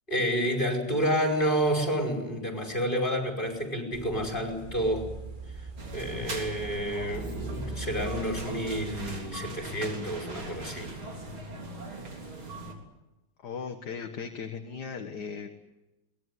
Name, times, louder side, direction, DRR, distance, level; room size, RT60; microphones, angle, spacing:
voice 1, 0.1-5.1 5.6-5.7 5.9-10.9, equal, 25° left, 2 dB, 5.4 m, -29 dB
sound 1, 3.9-11.4, right 3 dB, 25° right, 1.8 m, -42 dB
sound 2, 5.8-12.7, right 2 dB, 80° right, 4.5 m, -40 dB
voice 2, 13.4-15.5, left 6 dB, 55° left, 5 dB, 1.9 m, -37 dB
22.5 x 20.5 x 9.5 m, 1.0 s
omnidirectional pair, 2.2 m